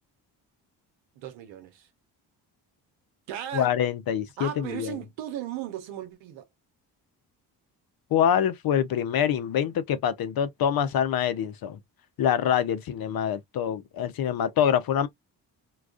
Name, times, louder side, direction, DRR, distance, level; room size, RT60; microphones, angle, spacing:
voice 1, 1.1-1.9 3.3-3.7 4.4-6.5, right 11 dB, 80° right, 0.8 m, -36 dB
voice 2, 3.5-4.9 8.1-11.8 12.2-15.1, left 9 dB, 55° left, 0.6 m, -25 dB
2.3 x 2.2 x 2.4 m
supercardioid pair, 55°, 44 cm